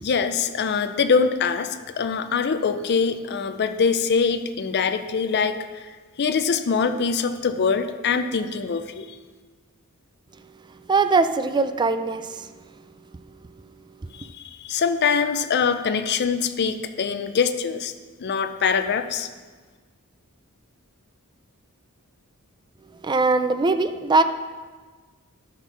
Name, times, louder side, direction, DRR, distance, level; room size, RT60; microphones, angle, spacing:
voice 1, 0.0-5.9 6.2-9.2 14.1-17.9 18.2-19.3, left 5 dB, 50° left, 9 dB, 0.5 m, -23 dB
voice 2, 10.9-12.5 14.0-14.1 23.0-24.2, right 3 dB, 20° right, 10 dB, 0.4 m, -21 dB
11.5 x 4.3 x 6.0 m, 1.4 s
head